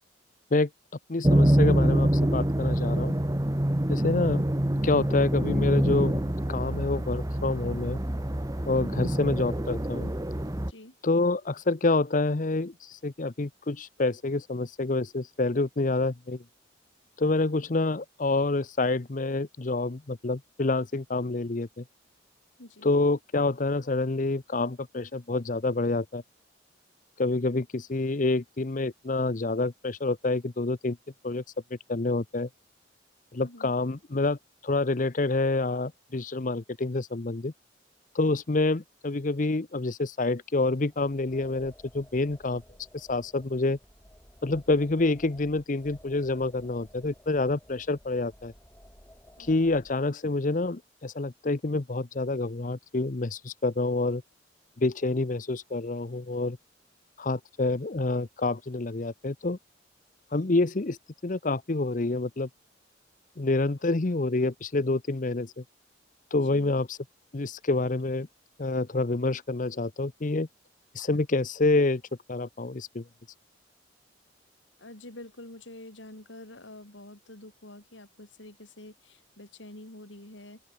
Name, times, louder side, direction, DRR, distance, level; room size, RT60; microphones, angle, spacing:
voice 1, 1.1-3.2 3.9-4.4 4.8-6.2 6.5-8.0 8.7-10.1 11.0-16.4 17.2-21.8 22.8-26.2 27.2-31.0 31.2-31.4 31.9-32.5 33.3-37.5 38.1-42.6 42.9-43.8 44.4-48.5 49.4-54.2 54.8-56.6 57.2-59.6 60.3-61.0 61.2-62.5 63.4-65.6 66.3-67.0 67.3-68.3 68.6-70.5 70.9-72.0 72.3-73.0, left 2 dB, 45° left, 0.8 m, -27 dB
sound 1, 1.2-10.7, right 1 dB, 20° right, 1.1 m, -25 dB
voice 2, 22.6-22.9 33.4-33.7 49.4-49.8 66.4-66.8 74.8-80.6, left 1 dB, 80° left, 4.7 m, -47 dB
sound 2, 40.8-50.0, equal, 10° left, 4.4 m, -55 dB
open air
head